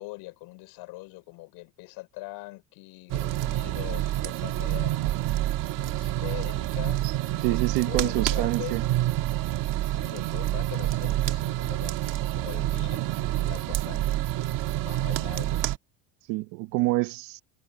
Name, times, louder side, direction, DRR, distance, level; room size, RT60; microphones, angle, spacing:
voice 1, 0.0-5.1 5.4-8.8 9.8-14.1 14.8-15.6, left 22 dB, 75° left, 5.0 m, -42 dB
sound 1, 3.1-15.8, right 14 dB, 55° right, 1.7 m, -28 dB
voice 2, 7.4-8.8 16.3-17.4, right 20 dB, 80° right, 1.3 m, -27 dB
cardioid pair, 125°, 38 cm